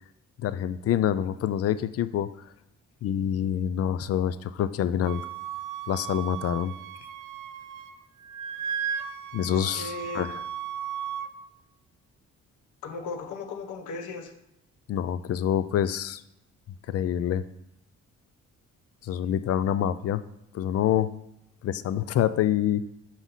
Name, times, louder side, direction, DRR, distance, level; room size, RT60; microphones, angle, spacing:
voice 1, 0.4-2.3 3.0-5.2 5.9-6.7 9.3-10.4 14.9-16.2 16.9-17.4 19.0-20.2 20.5-21.1 21.6-22.8, left 10 dB, 55° left, 14 dB, 0.5 m, -26 dB
Wind instrument woodwind instrument, 5.1-8.0 8.2-11.3, right 9 dB, 80° right, 0.6 m, -35 dB
voice 2, 9.5-10.3 12.8-14.3, left 4 dB, 80° left, 6 dB, 1.0 m, -37 dB
6.1 x 5.5 x 4.0 m, 0.83 s
cardioid pair, 90°, 30 cm